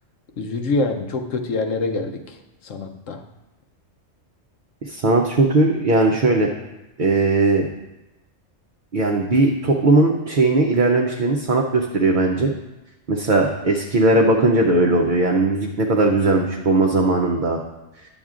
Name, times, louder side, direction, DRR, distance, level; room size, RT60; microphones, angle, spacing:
voice 1, 0.4-2.4 2.6-3.2, left 3 dB, 80° left, 4 dB, 1.1 m, -25 dB
voice 2, 4.8-6.5 7.0-7.7 8.9-12.5 13.1-17.6, right 2 dB, 50° right, 0 dB, 0.7 m, -18 dB
10.0 x 7.1 x 2.4 m, 1.0 s
omnidirectional pair, 1.3 m